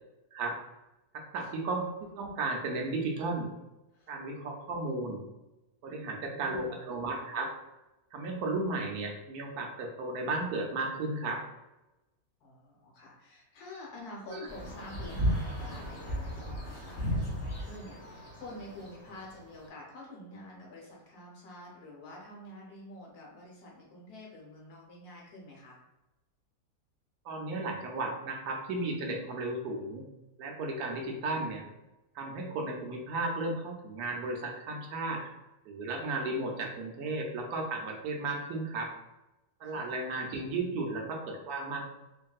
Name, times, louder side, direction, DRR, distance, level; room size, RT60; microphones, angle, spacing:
voice 1, 1.1-1.9 2.2-3.5 4.1-5.2 5.8-7.5 8.1-11.4 14.3-14.4 27.2-30.1 30.4-31.6 32.1-35.2 35.7-38.9 39.6-41.9, right 2 dB, 75° right, 1 dB, 1.1 m, -34 dB
voice 2, 5.9-6.7 12.4-25.8 39.6-40.0, left 1 dB, 75° left, -2 dB, 1.4 m, -48 dB
sound 1, 14.5-19.5, equal, 40° left, 0.8 m, -35 dB
2.9 x 2.6 x 2.3 m, 1.0 s
omnidirectional pair, 1.7 m